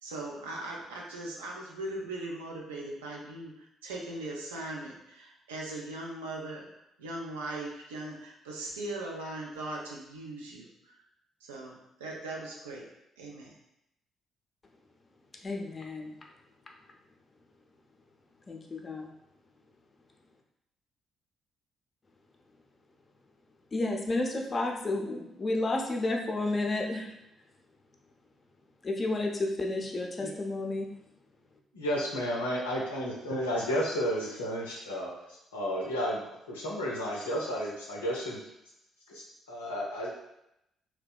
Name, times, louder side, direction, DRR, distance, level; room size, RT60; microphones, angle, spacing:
voice 1, 0.0-6.7 7.0-10.9 11.4-12.9 13.2-13.5, right 2 dB, 85° right, -2 dB, 0.4 m, -39 dB
voice 2, 15.4-16.3 18.5-19.1 23.7-27.2 28.8-30.9, left 2 dB, 35° left, 1 dB, 0.5 m, -31 dB
voice 3, 31.7-38.5 39.1-40.1, equal, 85° left, -4 dB, 0.5 m, -32 dB
2.7 x 2.2 x 2.2 m, 0.82 s
hypercardioid pair, 45°, 0 cm